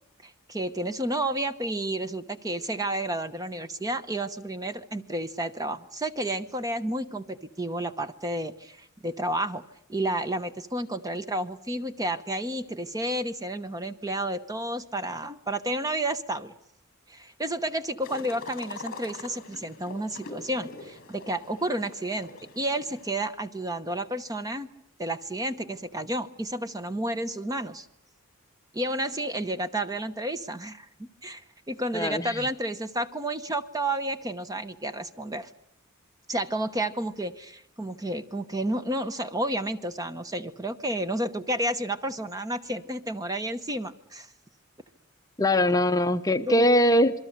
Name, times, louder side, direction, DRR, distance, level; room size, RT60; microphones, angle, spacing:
voice 1, 0.2-9.6 9.9-16.5 17.1-24.7 25.0-27.9 28.7-30.9 31.2-35.5 36.3-44.3 46.5-46.7, right 1 dB, 15° right, 11 dB, 0.9 m, -31 dB
sound 1, 18.0-23.1, left 3 dB, 40° left, 5.2 m, -43 dB
voice 2, 31.9-32.5 45.4-47.1, left 1 dB, 15° left, 8 dB, 0.9 m, -22 dB
27.5 x 23.0 x 6.6 m, 0.77 s
head